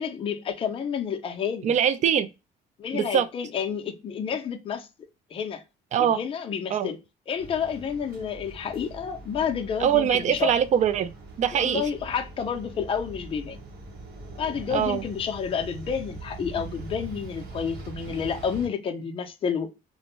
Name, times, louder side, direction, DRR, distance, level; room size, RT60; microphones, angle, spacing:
voice 1, 0.0-1.7 2.8-4.9 5.3-5.6 6.0-7.0 7.3-10.5 11.5-13.6 14.4-19.7, left 7 dB, 35° left, 0.4 m, -30 dB
voice 2, 1.6-2.3 2.9-3.3 5.9-6.2 6.7-6.9 9.8-11.1 11.4-11.8 14.7-15.0, right 9 dB, 45° right, 0.4 m, -22 dB
sound 1, 7.4-18.7, right 2 dB, 70° right, 0.9 m, -42 dB
2.5 x 2.1 x 2.9 m
cardioid pair, 110°, 17 cm